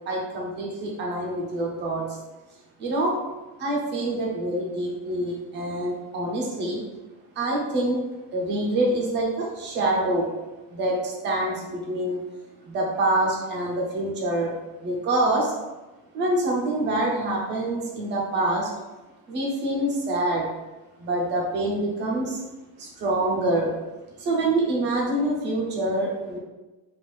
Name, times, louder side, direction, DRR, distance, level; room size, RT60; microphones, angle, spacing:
voice 1, 0.1-2.0 2.8-3.1 3.6-6.8 7.4-8.0 8.3-10.3 10.7-12.2 12.7-14.5 14.8-15.5 16.1-18.7 19.3-20.5 21.0-22.4 22.8-23.7 24.2-26.4, right 1 dB, 25° right, -2 dB, 0.4 m, -26 dB
3.3 x 2.3 x 3.0 m, 1.1 s
cardioid pair, 180°, 46 cm